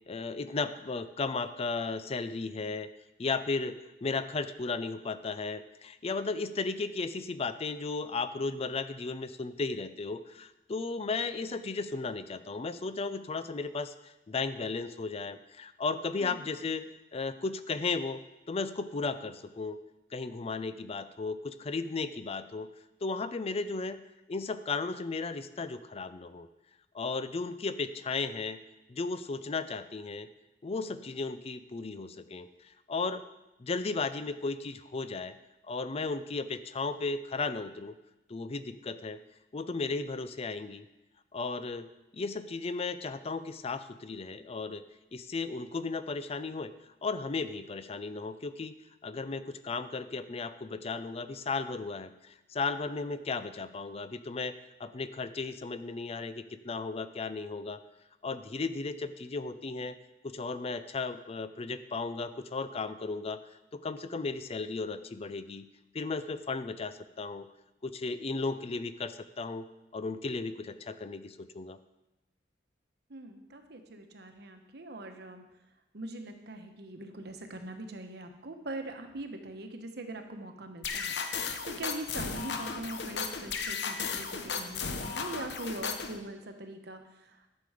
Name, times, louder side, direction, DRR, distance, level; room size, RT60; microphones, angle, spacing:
voice 1, 0.1-2.9 3.2-16.8 17.1-18.2 18.5-19.8 20.1-22.7 23.0-24.0 24.3-26.5 26.9-28.6 28.9-30.3 30.6-33.2 33.6-35.4 35.7-37.9 38.3-39.2 39.5-40.9 41.3-41.9 42.1-44.8 45.1-46.7 47.0-48.7 49.0-54.5 54.8-57.8 58.2-60.0 60.2-63.4 63.7-65.7 65.9-67.5 67.8-69.7 69.9-71.8, left 4 dB, 35° left, 12 dB, 0.5 m, -35 dB
voice 2, 73.1-75.4 75.9-87.5, right 2 dB, 65° right, 6 dB, 1.1 m, -42 dB
sound 1, 80.8-86.2, left 5 dB, 70° left, 0.9 m, -35 dB
11.5 x 6.8 x 5.0 m, 0.96 s
head